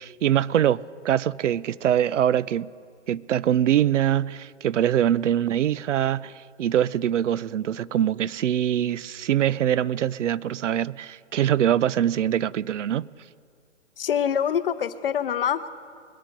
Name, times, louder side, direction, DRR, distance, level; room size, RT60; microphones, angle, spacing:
voice 1, 0.0-2.7 3.1-6.3 6.6-13.1, right 10 dB, 80° right, 0.5 m, -23 dB
voice 2, 14.0-15.7, left 8 dB, 50° left, 0.7 m, -25 dB
21.5 x 7.3 x 5.2 m
hypercardioid pair, 160°, 36 cm